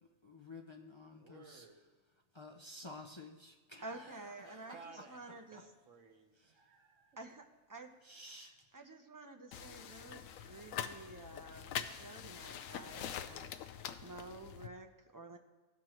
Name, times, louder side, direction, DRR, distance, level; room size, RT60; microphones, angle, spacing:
voice 1, 0.2-1.7 2.3-4.1 4.4-4.8 5.5-5.6 8.1-8.5, left 2 dB, 45° left, 2 dB, 0.3 m, -52 dB
voice 2, 1.2-1.8 2.4-2.5 4.7-7.3, right 4 dB, 70° right, 5 dB, 1.3 m, -58 dB
voice 3, 3.8-5.7 7.2-8.0 8.3-15.4, right 2 dB, 30° right, 4 dB, 0.4 m, -51 dB
sound 1, 9.5-14.7, left 9 dB, 80° left, 0.9 m, -44 dB
16.0 x 6.0 x 3.0 m, 1.3 s
omnidirectional pair, 1.4 m